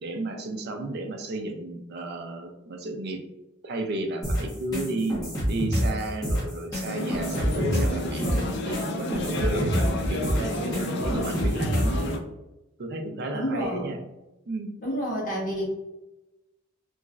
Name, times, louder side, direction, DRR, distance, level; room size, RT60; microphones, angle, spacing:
voice 1, 0.0-3.2 3.6-5.1 5.5-8.3 8.6-10.7 11.0-12.0 12.8-14.0 14.5-14.7, right 2 dB, 50° right, 4 dB, 0.4 m, -33 dB
sound 1, 4.2-12.1, equal, 20° left, 1.1 m, -27 dB
sound 2, 6.9-12.2, left 1 dB, 55° left, 0.5 m, -30 dB
voice 2, 13.3-14.0 14.8-15.7, equal, 40° left, -4 dB, 1.1 m, -29 dB
3.0 x 2.5 x 2.4 m, 0.99 s
head